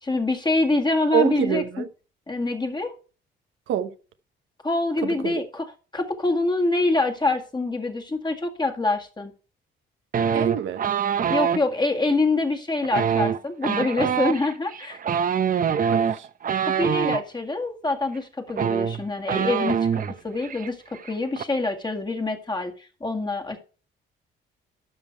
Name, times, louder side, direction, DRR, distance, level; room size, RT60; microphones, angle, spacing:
voice 1, 0.0-1.8 2.3-2.9 4.6-9.3 11.3-15.0 16.6-23.6, left 2 dB, 20° left, 1.9 m, -25 dB
voice 2, 1.1-1.9 3.7-3.9 5.0-5.4 10.3-10.8 15.9-16.3, right 9 dB, 80° right, 0.9 m, -26 dB
sound 1, 10.1-11.6 12.8-17.2 18.2-18.3 18.5-20.1 20.4-20.7 20.9-21.4, right 7 dB, 45° right, 0.7 m, -24 dB
12.0 x 5.5 x 4.5 m
cardioid pair, 90°, 20 cm